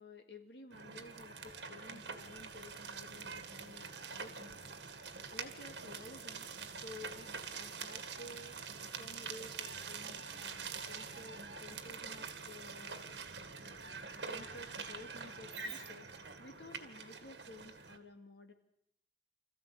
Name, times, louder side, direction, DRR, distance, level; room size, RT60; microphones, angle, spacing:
voice 1, 0.0-4.6 5.3-6.5 6.8-13.1 13.6-18.5, left 2 dB, 65° left, 6 dB, 2.2 m, -53 dB
sound 1, 0.7-18.0, right 5 dB, 65° right, 2.0 m, -45 dB
26.0 x 14.5 x 8.6 m, 0.78 s
head